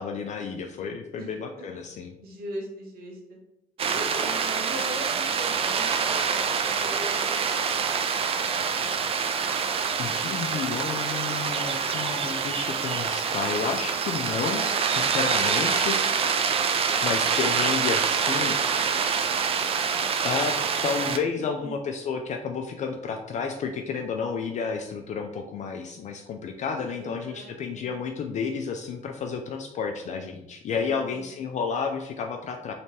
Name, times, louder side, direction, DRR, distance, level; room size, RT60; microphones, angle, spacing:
voice 1, 0.0-2.1 10.0-14.6 14.9-16.0 17.0-19.0 20.2-20.5 20.8-32.7, left 5 dB, 45° left, 4 dB, 0.4 m, -31 dB
voice 2, 1.2-1.6 2.2-3.4 3.8-8.1 14.7-15.2 21.6-21.8 26.8-27.9 30.8-31.3, right 1 dB, 65° right, 0 dB, 1.0 m, -40 dB
sound 1, 3.8-21.2, right 6 dB, 35° right, 0.3 m, -26 dB
3.3 x 2.8 x 3.1 m, 0.84 s
cardioid pair, 110°, 17 cm